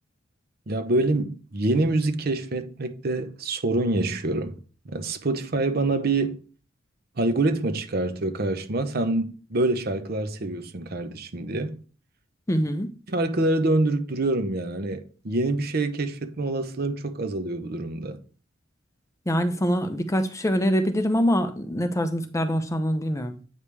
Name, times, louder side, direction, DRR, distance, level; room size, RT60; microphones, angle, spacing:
voice 1, 0.7-4.6 4.8-6.4 7.2-11.8 13.1-18.2, right 2 dB, 50° right, 0.8 m, -26 dB
voice 2, 12.5-12.9 19.3-23.4, equal, 15° left, 0.6 m, -24 dB
8.5 x 5.1 x 3.3 m
head